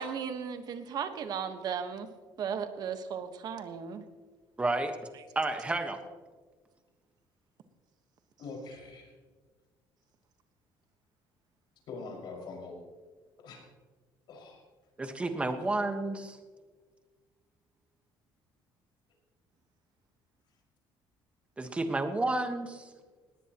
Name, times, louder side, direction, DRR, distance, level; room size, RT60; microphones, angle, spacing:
voice 1, 0.0-2.1 2.4-4.0, right 7 dB, 50° right, 8 dB, 1.4 m, -36 dB
voice 2, 4.6-5.0 5.3-6.0 15.0-16.4 21.6-22.9, right 2 dB, 15° right, 6 dB, 1.3 m, -31 dB
voice 3, 8.4-9.1 11.9-12.7 13.4-13.6 14.3-14.6 15.4-15.5, left 3 dB, 60° left, -1 dB, 5.7 m, -43 dB
19.5 x 18.0 x 3.0 m, 1.4 s
cardioid pair, 155°, 9 cm